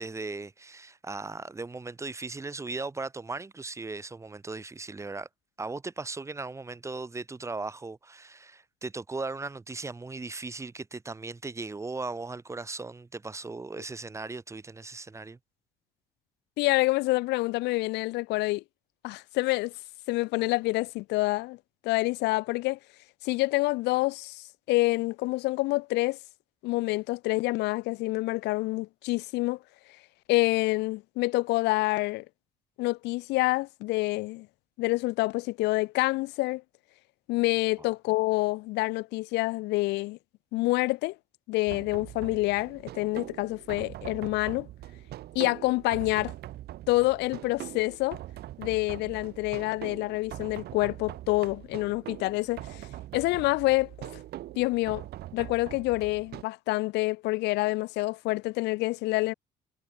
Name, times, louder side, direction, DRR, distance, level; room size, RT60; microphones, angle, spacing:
voice 1, 0.0-5.3 5.6-15.4 37.8-37.9, right 3 dB, 15° right, 1.2 m, -37 dB
voice 2, 16.6-18.6 19.0-19.7 20.1-21.6 21.8-22.8 23.2-26.2 26.6-29.6 30.3-32.2 32.8-34.5 34.8-36.6 37.3-40.2 40.5-41.2 41.5-44.7 45.3-46.3 46.9-48.2 48.6-52.9 53.1-54.2 54.6-55.0 55.3-59.3, left 21 dB, 85° left, 0.8 m, -27 dB
sound 1, 41.7-56.4, right 14 dB, 70° right, 2.6 m, -42 dB
cardioid pair, 110°, 17 cm